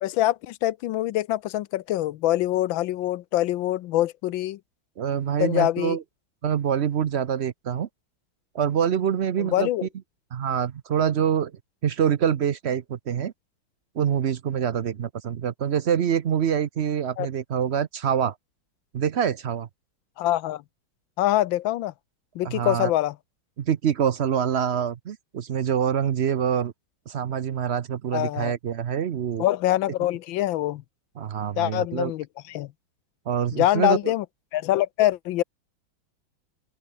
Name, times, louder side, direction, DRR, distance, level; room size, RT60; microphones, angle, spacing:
voice 1, 0.0-4.6 5.4-6.0 9.4-9.9 17.2-17.3 20.2-20.6 21.2-21.9 22.3-23.1 28.1-28.5 29.4-30.8 31.6-32.7 33.5-34.2 34.5-35.4, left 14 dB, 75° left, 1.4 m, -24 dB
voice 2, 5.0-6.0 6.4-7.9 8.5-9.9 10.3-11.5 11.8-13.3 14.0-18.3 18.9-19.7 22.4-22.9 23.6-26.7 27.1-29.4 31.2-32.1 33.3-34.1, right 8 dB, 70° right, 0.6 m, -25 dB
open air
omnidirectional pair, 2.2 m